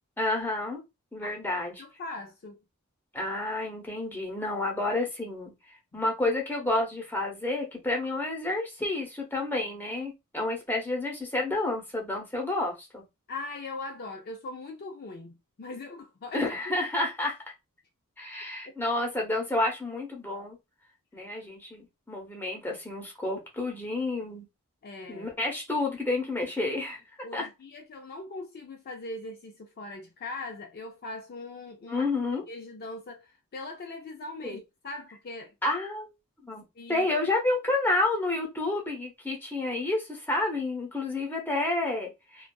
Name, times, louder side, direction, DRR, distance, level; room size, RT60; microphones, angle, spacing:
voice 1, 0.2-0.8 1.1-1.8 3.1-5.5 5.9-13.0 16.3-17.4 18.2-20.6 21.1-24.5 25.1-27.0 27.3-27.5 31.9-32.4 34.4-34.6 35.6-36.1 36.4-36.6 36.9-42.5, left 2 dB, 10° left, 0.8 m, -30 dB
voice 2, 1.2-2.6 5.9-6.0 13.3-16.8 18.6-18.8 21.1-21.2 24.8-25.3 27.2-32.1 32.5-35.5 36.8-37.1, left 2 dB, 45° left, 0.4 m, -41 dB
2.6 x 2.3 x 2.2 m
head